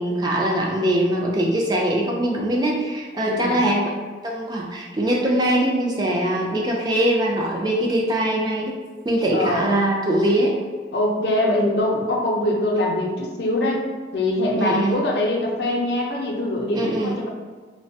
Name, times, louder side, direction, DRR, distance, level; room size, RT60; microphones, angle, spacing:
voice 1, 0.0-3.9 4.2-8.7 9.1-10.5 14.6-14.9 16.7-17.2, right 1 dB, 25° right, -2 dB, 0.3 m, -22 dB
voice 2, 3.3-3.6 9.3-9.7 10.9-13.8 14.1-17.3, left 1 dB, 65° left, -1 dB, 0.5 m, -23 dB
3.1 x 2.1 x 2.7 m, 1.5 s
head